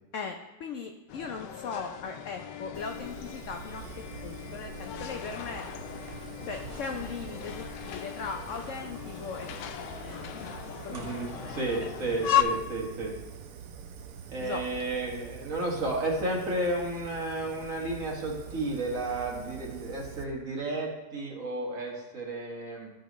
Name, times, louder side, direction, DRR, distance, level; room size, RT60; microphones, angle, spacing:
voice 1, 0.1-3.8 4.2-5.6 6.4-11.0 11.3-11.9 14.4-14.6, left 5 dB, 70° left, 4 dB, 0.7 m, -39 dB
sound 1, 1.1-12.4, left 11 dB, 85° left, 1.2 m, -36 dB
Fire, 2.7-20.2, right 7 dB, 70° right, 1.0 m, -45 dB
sound 2, 5.9-11.5, right 3 dB, 35° right, 0.7 m, -50 dB
voice 2, 10.9-13.1 14.3-22.9, right 2 dB, 50° right, -1 dB, 1.8 m, -32 dB
12.5 x 5.1 x 3.0 m, 1.1 s
omnidirectional pair, 1.8 m